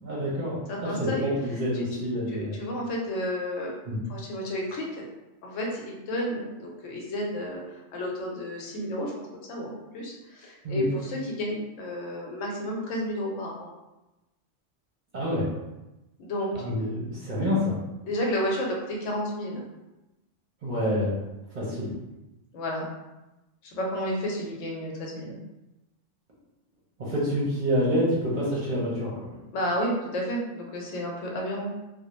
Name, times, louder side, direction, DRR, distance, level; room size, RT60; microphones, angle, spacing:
voice 1, 0.0-2.6 3.9-4.0 10.6-10.8 15.1-15.5 16.5-17.8 20.6-21.2 21.5-21.9 27.0-29.4, equal, 50° right, -6 dB, 0.6 m, -27 dB
voice 2, 0.7-1.3 2.3-3.7 4.1-5.0 5.4-13.7 16.2-16.6 18.0-19.6 22.5-22.9 23.6-25.4 29.5-31.7, equal, 80° left, -1 dB, 1.0 m, -31 dB
2.3 x 2.0 x 2.9 m, 1.0 s
omnidirectional pair, 1.3 m